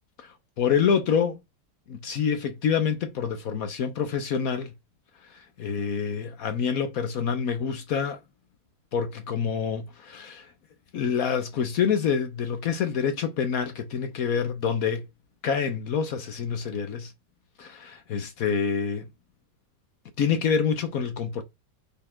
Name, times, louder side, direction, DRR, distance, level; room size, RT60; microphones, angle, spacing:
voice 1, 0.2-1.4 1.9-4.7 5.3-8.2 8.9-10.5 10.9-15.1 15.4-17.1 17.6-19.1 20.2-21.4, left 7 dB, 60° left, 1.0 m, -27 dB
5.2 x 4.2 x 4.3 m
omnidirectional pair, 2.0 m